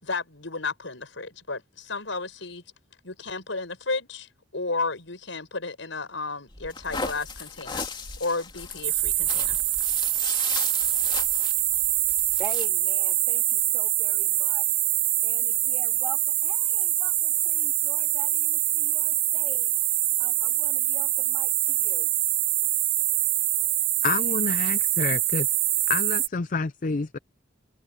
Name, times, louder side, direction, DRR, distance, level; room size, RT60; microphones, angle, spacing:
voice 1, 0.0-2.6 3.0-7.8 8.2-9.6, left 3 dB, 85° left, 5.6 m, -33 dB
sound 1, 6.5-12.7, left 4 dB, 25° left, 2.9 m, -36 dB
sound 2, 8.8-26.3, right 14 dB, 55° right, 1.4 m, -24 dB
voice 2, 12.4-15.0 15.2-19.7 20.2-22.1, right 1 dB, 10° right, 3.4 m, -44 dB
voice 3, 24.0-25.5 25.9-27.2, left 4 dB, 45° left, 0.5 m, -28 dB
head